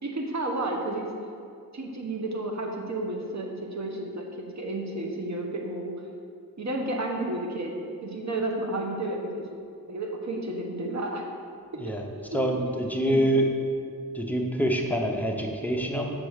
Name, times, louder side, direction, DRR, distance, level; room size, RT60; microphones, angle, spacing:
voice 1, 0.0-1.1 1.7-5.9 6.6-7.7 8.0-9.5 9.9-11.2 12.5-12.7 13.1-13.3, right 2 dB, 45° right, 1 dB, 1.2 m, -31 dB
voice 2, 12.3-13.5 14.1-16.1, equal, 5° left, 0 dB, 0.9 m, -26 dB
6.2 x 4.5 x 6.5 m, 2.5 s
wide cardioid pair, 80°, 37 cm